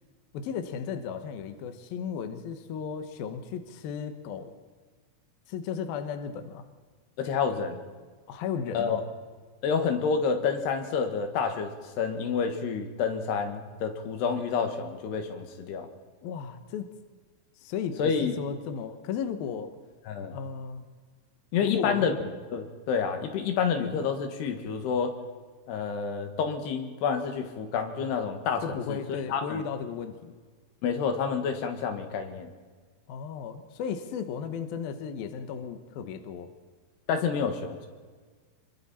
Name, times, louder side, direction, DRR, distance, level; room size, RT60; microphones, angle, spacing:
voice 1, 0.3-4.5 5.5-6.6 8.3-9.0 16.2-16.9 17.6-19.7 20.3-20.9 21.6-22.2 28.6-30.3 33.1-36.5, left 7 dB, 70° left, 7 dB, 2.9 m, -35 dB
voice 2, 7.2-7.8 8.7-9.0 9.6-11.7 12.0-15.9 18.0-18.4 20.1-20.4 21.5-22.1 22.5-25.2 25.7-29.0 29.3-29.6 30.8-32.5 37.1-37.9, left 6 dB, 85° left, 5 dB, 3.7 m, -29 dB
26.0 x 23.5 x 4.3 m, 1.5 s
omnidirectional pair, 4.7 m